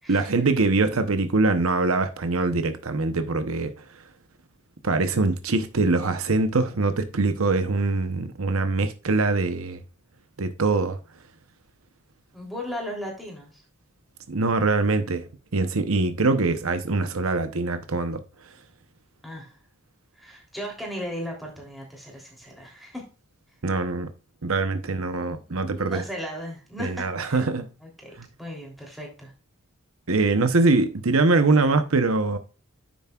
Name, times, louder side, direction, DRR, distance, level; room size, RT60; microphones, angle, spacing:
voice 1, 0.1-3.8 4.8-9.8 10.4-11.0 14.3-15.3 15.5-18.2 23.6-24.1 24.4-26.0 26.8-27.7 28.2-28.3 30.1-32.4, right 3 dB, 65° right, 0.9 m, -23 dB
voice 2, 12.3-13.6 19.2-19.5 20.2-23.0 25.1-27.4 27.8-28.1 28.4-29.3, equal, ahead, 3.2 m, -37 dB
10.0 x 7.1 x 2.4 m
head